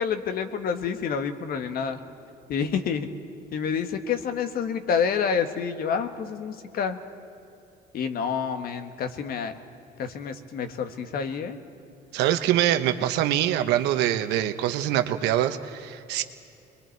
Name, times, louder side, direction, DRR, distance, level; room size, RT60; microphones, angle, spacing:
voice 1, 0.0-2.0 2.5-3.1 3.5-7.0 7.9-9.5 10.0-11.6, left 6 dB, 60° left, 8 dB, 1.5 m, -28 dB
voice 2, 12.1-16.2, right 12 dB, 90° right, 9 dB, 1.0 m, -24 dB
28.5 x 22.0 x 4.6 m, 2.7 s
cardioid pair, 110°, 17 cm